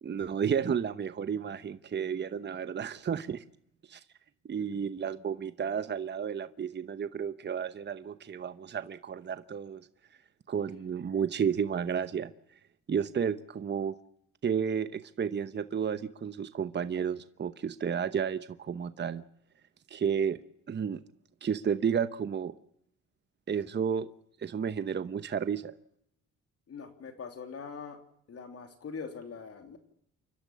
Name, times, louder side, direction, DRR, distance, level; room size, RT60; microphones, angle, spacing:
voice 1, 0.0-3.4 3.9-4.0 4.5-9.9 10.5-12.3 12.9-14.0 14.4-19.2 19.9-20.4 20.7-21.0 21.4-22.5 23.5-24.1 24.4-25.7, right 7 dB, 35° right, 12 dB, 1.0 m, -32 dB
voice 2, 26.7-28.0 28.3-29.8, left 5 dB, 50° left, 6 dB, 3.2 m, -42 dB
29.0 x 12.0 x 8.6 m, 0.73 s
cardioid pair, 90°, 30 cm